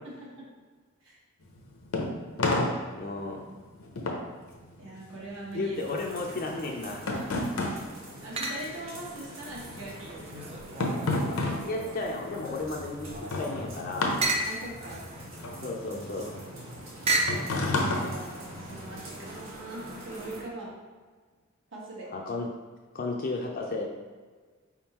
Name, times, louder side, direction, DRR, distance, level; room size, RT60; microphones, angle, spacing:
sound 1, 1.4-9.1 9.3-19.0, left 2 dB, 80° left, 0.7 m, -32 dB
voice 1, 3.0-3.4 5.5-7.4 11.6-14.2 15.6-16.3 22.1-22.5 22.9-23.9, left 2 dB, 45° left, 0 dB, 0.4 m, -33 dB
voice 2, 4.8-6.0 8.2-10.6 14.4-15.1 17.4-20.7 21.7-22.1, right 2 dB, 65° right, -5 dB, 1.3 m, -42 dB
sound 2, 5.7-20.4, right 1 dB, 80° right, 1.4 m, -45 dB
sound 3, 6.9-7.4 8.4-8.9 9.4-12.1 12.6-17.5, right 2 dB, 30° right, 0.4 m, -34 dB
4.8 x 3.6 x 2.9 m, 1.5 s
head